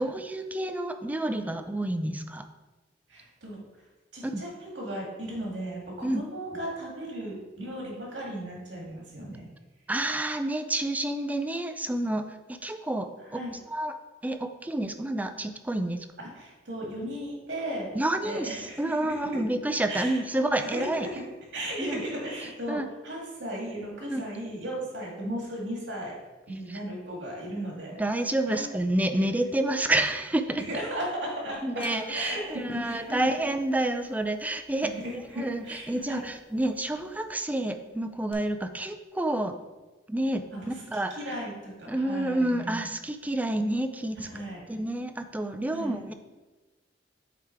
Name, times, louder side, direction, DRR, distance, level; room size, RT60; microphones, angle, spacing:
voice 1, 0.0-2.5 4.2-4.4 6.0-6.2 9.9-13.4 13.7-14.0 14.2-16.1 17.9-21.1 21.8-22.0 22.7-22.9 24.1-24.2 26.7-26.8 28.0-30.6 31.6-34.9 35.4-39.6 40.1-41.2 41.9-44.2 44.7-46.1, right 1 dB, 10° right, 8 dB, 0.4 m, -29 dB
voice 2, 3.1-3.6 4.1-9.5 13.3-13.5 16.2-17.9 18.2-19.2 19.9-20.2 20.6-21.1 21.5-26.1 26.5-28.0 28.5-28.6 30.6-31.8 32.1-33.3 34.8-36.2 40.5-42.8 44.2-44.6 45.7-46.0, right 1 dB, 85° right, -2 dB, 2.1 m, -36 dB
sound 1, 31.8-36.0 36.3-37.0 38.3-38.4, equal, 30° left, 0.8 m, -46 dB
7.4 x 3.6 x 4.6 m, 1.2 s
head